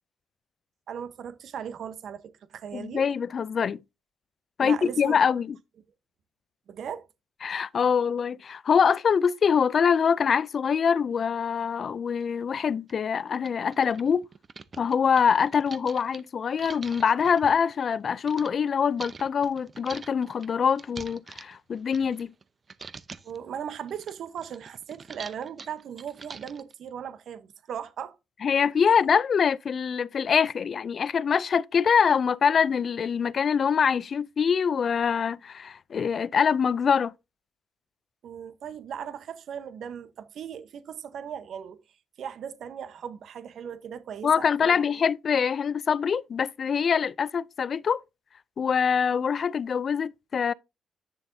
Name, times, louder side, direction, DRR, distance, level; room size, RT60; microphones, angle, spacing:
voice 1, 0.9-3.1 4.6-5.2 6.7-7.1 23.2-28.2 38.2-41.8 42.2-44.8, right 8 dB, 65° right, 1.0 m, -38 dB
voice 2, 2.7-3.8 4.6-5.6 7.4-14.2 14.8-22.3 28.4-37.1 44.2-48.0 48.6-50.5, left 6 dB, 50° left, 0.4 m, -24 dB
sound 1, 12.2-12.3 12.9-13.0 13.3-18.5 19.0-22.4 22.7-23.4 23.7-26.7, right 5 dB, 35° right, 0.7 m, -45 dB
9.7 x 6.7 x 2.7 m
cardioid pair, 90°, 0 cm